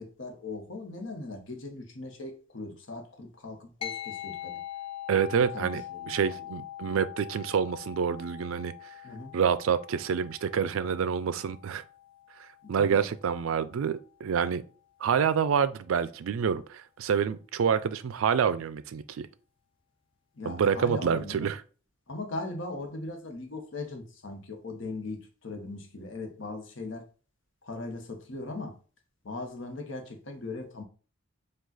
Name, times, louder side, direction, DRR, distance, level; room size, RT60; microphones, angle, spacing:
voice 1, 0.0-4.6 5.5-6.4 9.0-9.4 12.6-13.1 20.3-21.5 22.1-27.1 27.6-28.7 29.2-30.8, left 2 dB, 65° left, 0.9 m, -39 dB
sound 1, 3.8-13.5, left 12 dB, 25° left, 0.3 m, -43 dB
voice 2, 5.1-8.7 9.3-11.8 12.4-14.6 15.0-19.3 20.5-21.6, right 7 dB, 80° right, 0.4 m, -27 dB
4.9 x 2.4 x 3.9 m
head